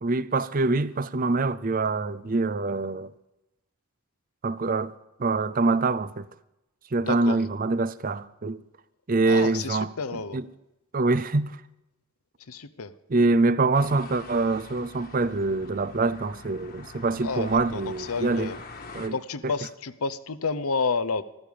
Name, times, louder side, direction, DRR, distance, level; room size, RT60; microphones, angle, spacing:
voice 1, 0.0-3.1 4.4-4.9 5.2-6.3 6.9-8.6 9.1-10.5 10.9-11.6 13.1-18.5 18.9-19.2, right 3 dB, 40° right, 0.5 m, -25 dB
voice 2, 7.0-7.4 9.2-10.4 12.5-12.9 17.2-18.6 19.1-21.2, left 4 dB, 85° left, 0.8 m, -30 dB
sound 1, 13.7-19.1, left 3 dB, 45° left, 1.6 m, -44 dB
15.0 x 14.5 x 5.1 m
head